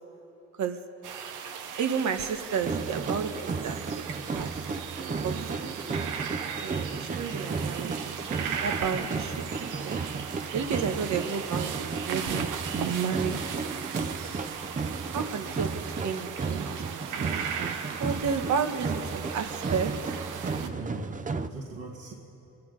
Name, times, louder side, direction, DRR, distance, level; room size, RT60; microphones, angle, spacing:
sound 1, 1.0-20.7, right 7 dB, 85° right, 1.0 m, -37 dB
voice 1, 1.8-3.9 4.1-4.5 5.0-5.8 6.6-10.0 10.5-13.3 15.1-17.7 18.0-19.9, right 6 dB, 70° right, 6 dB, 1.3 m, -32 dB
sound 2, 2.6-21.5, right 4 dB, 25° right, 0.6 m, -34 dB
voice 2, 20.5-22.1, right 2 dB, 50° right, -4 dB, 2.0 m, -40 dB
26.5 x 10.5 x 5.2 m, 3.0 s
cardioid pair, 90°, 30 cm